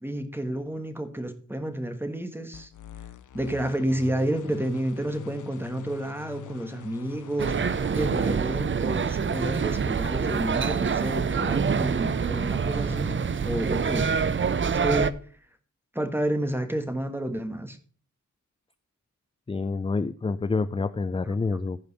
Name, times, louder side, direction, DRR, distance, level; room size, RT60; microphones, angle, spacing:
voice 1, 0.0-2.7 3.3-14.1 14.8-15.1 15.9-17.8, right 1 dB, 5° right, 7 dB, 1.4 m, -30 dB
sound 1, 2.5-8.3, left 9 dB, 70° left, 0.6 m, -43 dB
sound 2, 7.4-15.1, right 6 dB, 40° right, 0.5 m, -26 dB
voice 2, 19.5-21.8, left 4 dB, 20° left, 13 dB, 0.4 m, -27 dB
15.5 x 5.2 x 4.0 m, 0.42 s
wide cardioid pair, 130°, 31 cm